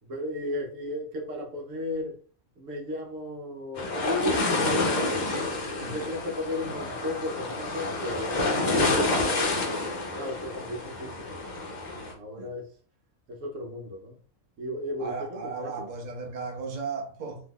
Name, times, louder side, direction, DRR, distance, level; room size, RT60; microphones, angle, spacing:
voice 1, 0.0-2.2 2.6-5.1 5.7-9.8 10.1-11.4 12.1-12.7 13.3-14.2 14.6-15.9, left 1 dB, 70° right, 1.1 m, -35 dB
sound 1, 3.8-12.1, left 2 dB, 45° left, 0.6 m, -28 dB
voice 2, 15.0-17.4, right 4 dB, 45° right, 0.7 m, -35 dB
3.5 x 2.8 x 2.3 m
omnidirectional pair, 1.4 m